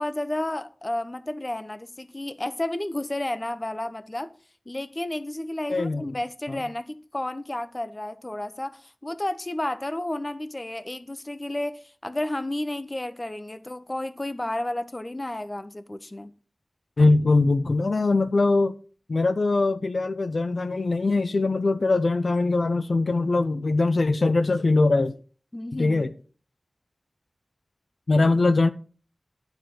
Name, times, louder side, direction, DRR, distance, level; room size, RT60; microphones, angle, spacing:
voice 1, 0.0-4.3 4.7-16.3 25.5-26.1 28.1-28.3, left 1 dB, 30° left, 0.9 m, -32 dB
voice 2, 5.7-6.2 6.5-6.6 17.0-18.7 19.1-25.2 25.7-26.1 28.1-28.7, left 3 dB, 75° left, 0.5 m, -22 dB
11.5 x 4.1 x 7.8 m
wide cardioid pair, 55°, 0 cm